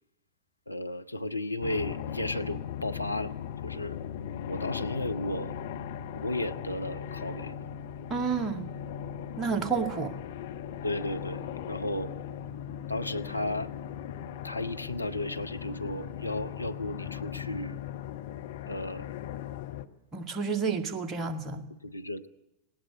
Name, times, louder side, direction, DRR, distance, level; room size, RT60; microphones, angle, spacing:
voice 1, 0.7-3.3 3.6-4.0 4.5-5.5 6.1-7.5 10.8-12.1 12.9-13.7 14.4-17.8 18.6-19.1 21.8-22.3, left 1 dB, 85° left, 9 dB, 0.8 m, -34 dB
sound 1, 1.6-19.9, left 9 dB, 55° left, 1.2 m, -38 dB
voice 2, 8.1-8.7 9.4-10.2 20.1-21.6, right 5 dB, 25° right, 5 dB, 2.2 m, -30 dB
19.5 x 18.5 x 9.6 m, 0.91 s
figure-of-eight pair, 90°, 0 cm